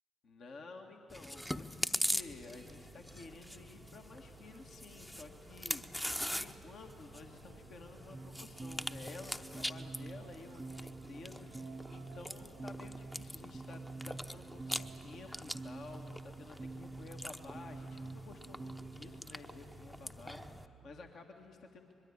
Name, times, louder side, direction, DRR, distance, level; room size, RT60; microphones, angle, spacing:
voice 1, 0.2-13.8 14.0-21.9, left 3 dB, 55° left, 3 dB, 1.6 m, -52 dB
Chewing mastication, 1.1-20.7, equal, 5° left, 0.8 m, -43 dB
sound 1, 2.1-21.1, right 9 dB, 70° right, 0.7 m, -60 dB
sound 2, 8.1-19.2, right 3 dB, 20° right, 0.5 m, -48 dB
23.5 x 22.0 x 8.6 m, 2.5 s
figure-of-eight pair, 40°, 0 cm